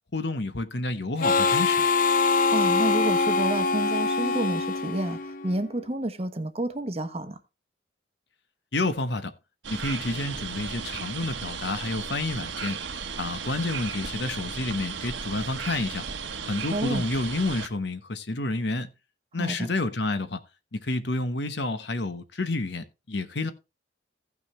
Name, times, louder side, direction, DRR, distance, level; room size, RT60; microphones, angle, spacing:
voice 1, 0.1-1.9 8.7-9.3 9.7-12.8 13.2-16.0 16.5-18.9 19.3-20.4 20.7-23.5, left 2 dB, 60° left, 1.0 m, -29 dB
Harmonica, 1.2-5.7, left 4 dB, 45° left, 0.5 m, -24 dB
voice 2, 2.5-7.4 16.7-17.0 19.4-19.7, right 1 dB, 30° right, 1.0 m, -30 dB
sound 1, 9.6-17.7, right 6 dB, 75° right, 1.3 m, -35 dB
15.5 x 6.0 x 3.2 m
head